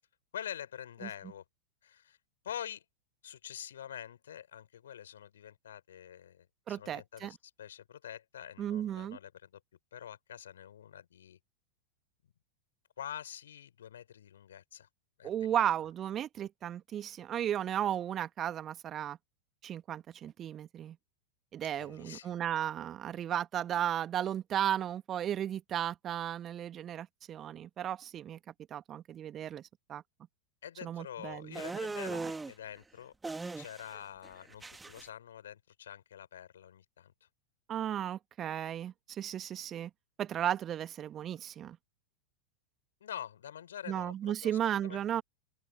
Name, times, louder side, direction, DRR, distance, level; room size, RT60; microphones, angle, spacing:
voice 1, 0.3-1.4 1.8-2.2 2.4-2.8 3.2-9.6 9.9-11.4 13.0-14.9 15.2-15.5 21.8-22.4 30.6-33.1 33.6-37.3 43.0-45.0, left 10 dB, 65° left, 5.3 m, -46 dB
voice 2, 6.7-7.3 8.6-9.2 15.2-19.2 19.6-21.0 21.5-28.4 28.7-30.0 30.8-31.6 32.1-32.3 37.7-39.9 40.2-41.8 43.9-45.2, right 10 dB, 30° right, 2.0 m, -35 dB
sound 1, 31.5-32.5 33.2-34.0 34.2-35.0, right 3 dB, 10° right, 2.3 m, -39 dB
open air
figure-of-eight pair, 90°, 0 cm